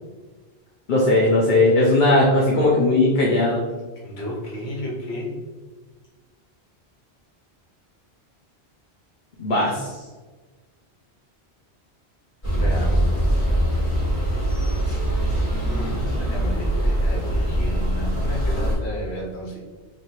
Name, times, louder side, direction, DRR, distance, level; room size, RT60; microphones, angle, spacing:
voice 1, 0.9-3.6 9.4-9.9, left 2 dB, 50° left, -4 dB, 0.8 m, -18 dB
voice 2, 4.0-5.4 12.4-13.6 15.6-19.6, equal, 70° left, -2 dB, 1.2 m, -33 dB
sound 1, 12.4-18.7, equal, 30° left, 1.5 m, -22 dB
3.2 x 2.6 x 4.2 m, 1.3 s
omnidirectional pair, 1.1 m